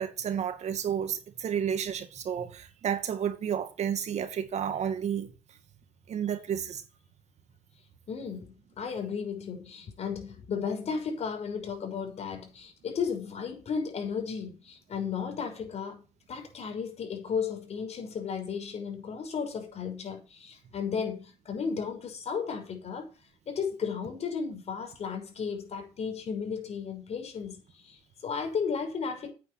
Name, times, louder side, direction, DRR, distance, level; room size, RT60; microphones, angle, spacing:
voice 1, 0.0-5.3 6.1-6.8, right 8 dB, 65° right, 2.1 m, -31 dB
voice 2, 8.1-16.0 16.3-23.1 23.5-29.3, left 6 dB, 60° left, 5.9 m, -34 dB
9.4 x 9.4 x 6.0 m
supercardioid pair, 70°, 12 cm